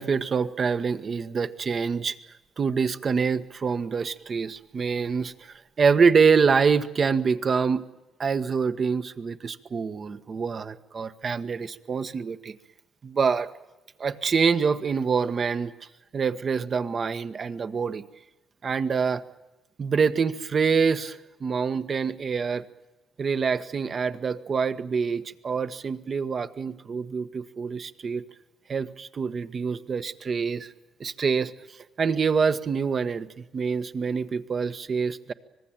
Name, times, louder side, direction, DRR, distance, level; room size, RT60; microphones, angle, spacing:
voice 1, 0.0-2.2 2.6-7.9 8.2-12.5 13.0-13.5 14.0-15.7 16.1-18.0 18.6-19.2 19.8-22.6 23.2-28.2 28.7-30.7 31.0-31.5 32.0-35.3, right 5 dB, 45° right, 10 dB, 1.4 m, -25 dB
25.5 x 20.0 x 9.1 m, 1.0 s
cardioid pair, 90°, 0 cm